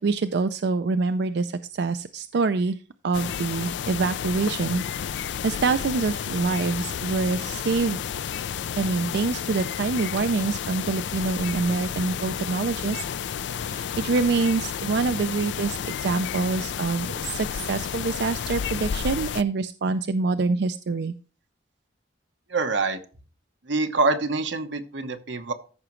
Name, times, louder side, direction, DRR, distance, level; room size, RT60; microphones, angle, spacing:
voice 1, 0.0-2.8 3.0-8.0 8.8-13.0 13.6-21.1, right 4 dB, 65° right, 10 dB, 0.4 m, -26 dB
sound 1, 3.1-19.4, left 8 dB, 70° left, 0.4 m, -31 dB
voice 2, 22.5-23.0 23.6-25.5, right 3 dB, 85° right, 7 dB, 1.1 m, -25 dB
14.0 x 6.0 x 3.1 m, 0.37 s
head